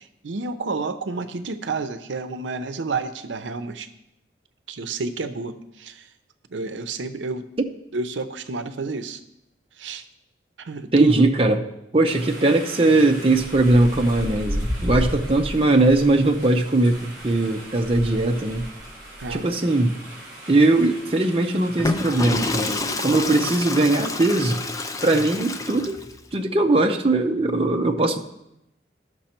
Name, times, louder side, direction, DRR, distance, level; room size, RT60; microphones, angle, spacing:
voice 1, 0.0-3.9 4.7-6.1 6.5-7.5 7.9-9.2 9.8-10.0 10.6-11.3 19.2-19.5, right 3 dB, 90° right, 10 dB, 0.6 m, -29 dB
voice 2, 10.9-11.6 11.9-18.6 19.3-19.9 20.5-24.6 25.0-26.0 26.3-28.2, right 2 dB, 30° right, 3 dB, 0.6 m, -20 dB
sound 1, 12.1-22.4, equal, 15° right, 4.2 m, -34 dB
Water / Toilet flush, 21.7-26.2, left 3 dB, 20° left, 0.4 m, -28 dB
13.0 x 6.1 x 4.4 m, 0.86 s
head